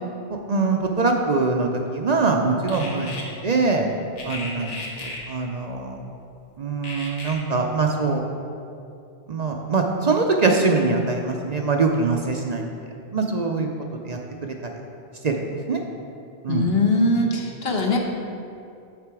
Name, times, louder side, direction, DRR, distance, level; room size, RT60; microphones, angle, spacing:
voice 1, 0.3-3.9 4.2-6.0 6.6-8.2 9.3-12.6 13.1-13.7 14.0-14.7 15.2-15.8 16.4-16.7, right 3 dB, 50° right, 2 dB, 0.5 m, -23 dB
sound 1, 2.7-3.2 4.2-5.2 6.8-7.3, left 2 dB, 85° left, 1.5 m, -35 dB
voice 2, 16.5-18.0, left 2 dB, 60° left, 1 dB, 1.1 m, -21 dB
6.8 x 6.6 x 4.7 m, 2.6 s
omnidirectional pair, 1.2 m